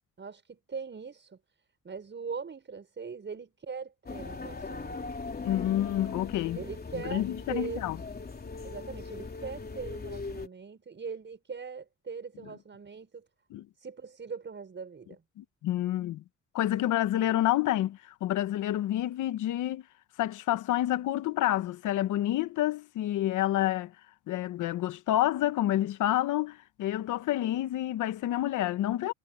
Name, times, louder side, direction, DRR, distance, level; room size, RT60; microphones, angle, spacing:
voice 1, 0.0-1.4 1.8-5.1 6.5-7.9 8.6-13.2 13.8-15.2, right 5 dB, 40° right, 6.3 m, -41 dB
sound 1, 4.1-10.5, left 4 dB, 30° left, 3.7 m, -39 dB
voice 2, 5.4-6.6 6.9-8.0 13.5-13.7 15.4-16.2 16.5-19.8 20.2-23.9 24.3-29.1, left 13 dB, 85° left, 1.2 m, -28 dB
cardioid pair, 90°, 30 cm